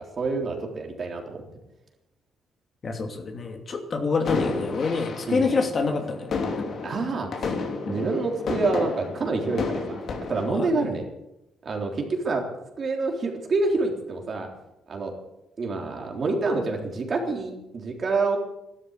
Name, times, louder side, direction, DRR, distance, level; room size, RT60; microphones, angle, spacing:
voice 1, 0.2-1.4 5.3-5.4 6.8-7.5 7.9-10.0 10.3-11.1 11.6-12.4 12.8-14.5 14.9-15.1 15.6-18.4, right 3 dB, 45° right, 2 dB, 3.7 m, -27 dB
voice 2, 2.8-6.3 10.5-10.9, left 4 dB, 40° left, 4 dB, 2.6 m, -26 dB
sound 1, 4.2-10.5, left 4 dB, 60° left, 3.1 m, -31 dB
13.0 x 12.5 x 8.2 m, 0.91 s
cardioid pair, 90°, 0 cm